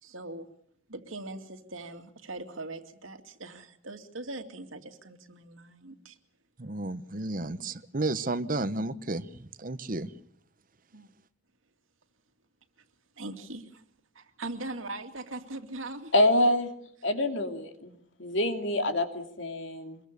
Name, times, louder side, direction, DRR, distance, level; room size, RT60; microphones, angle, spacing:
voice 1, 0.0-0.5 0.9-6.2 10.9-11.1 13.2-13.8 14.1-16.1, right 2 dB, 85° right, 6 dB, 2.5 m, -41 dB
voice 2, 6.6-10.1, right 2 dB, 45° right, 14 dB, 1.0 m, -32 dB
voice 3, 16.1-16.7 17.0-20.0, left 1 dB, 65° left, 6 dB, 2.7 m, -26 dB
25.0 x 22.0 x 6.9 m, 0.67 s
head